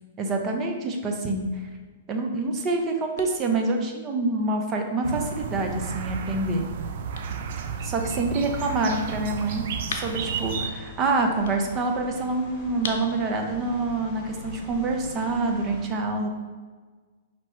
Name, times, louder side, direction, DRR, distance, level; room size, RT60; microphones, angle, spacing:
voice 1, 0.2-1.5 2.1-6.6 7.8-16.4, right 3 dB, 25° right, 3 dB, 0.7 m, -26 dB
sound 1, 2.3-15.8, left 4 dB, 70° left, 0.6 m, -44 dB
sound 2, 5.0-10.7, right 6 dB, 60° right, 0.4 m, -32 dB
sound 3, 10.2-15.8, left 2 dB, 30° left, 1.3 m, -43 dB
5.4 x 3.0 x 3.1 m, 1.4 s
hypercardioid pair, 125°, 0 cm